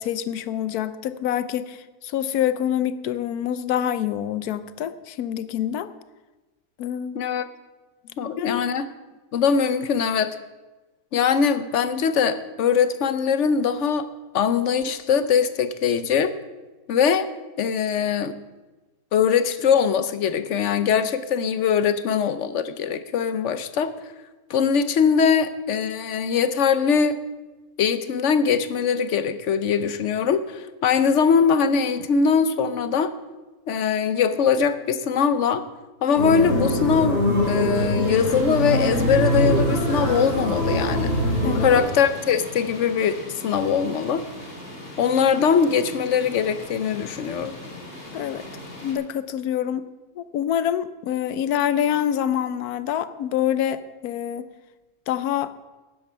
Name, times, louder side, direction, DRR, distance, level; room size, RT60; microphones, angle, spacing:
voice 1, 0.0-5.9 6.8-7.2 8.4-8.6 41.4-41.7 48.1-48.4 48.8-49.9 50.2-54.5 55.1-55.5, left 10 dB, 80° left, 14 dB, 1.2 m, -26 dB
voice 2, 7.1-7.5 8.2-8.9 9.3-10.4 11.1-14.1 14.3-16.3 16.9-17.3 17.6-18.4 19.1-23.9 24.5-27.2 27.8-33.1 33.7-35.6 36.0-41.1 41.5-44.2 45.0-47.6, left 6 dB, 60° left, 12 dB, 0.9 m, -21 dB
sound 1, 36.1-41.8, equal, 55° right, 5.4 m, -23 dB
sound 2, 38.0-48.9, left 1 dB, 40° left, 3.1 m, -40 dB
12.5 x 9.6 x 5.6 m, 1.2 s
omnidirectional pair, 1.6 m